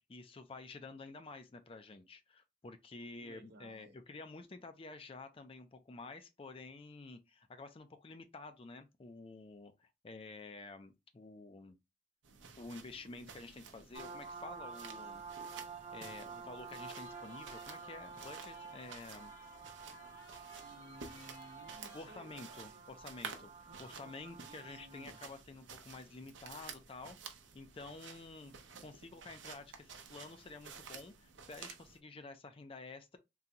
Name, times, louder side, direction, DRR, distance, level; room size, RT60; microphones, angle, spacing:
voice 1, 0.1-11.8 12.6-15.2 15.9-19.3 21.9-28.5 28.8-33.2, left 3 dB, 30° left, 0.4 m, -50 dB
voice 2, 3.2-4.0 19.3-19.4 20.6-22.9 23.7-25.2, right 1 dB, 60° right, 0.8 m, -58 dB
sound 1, 12.2-32.0, right 6 dB, 90° right, 0.6 m, -53 dB
sound 2, 13.9-25.3, right 5 dB, 35° right, 0.6 m, -50 dB
sound 3, 17.0-22.3, left 4 dB, 85° left, 1.0 m, -61 dB
3.8 x 2.3 x 2.8 m
head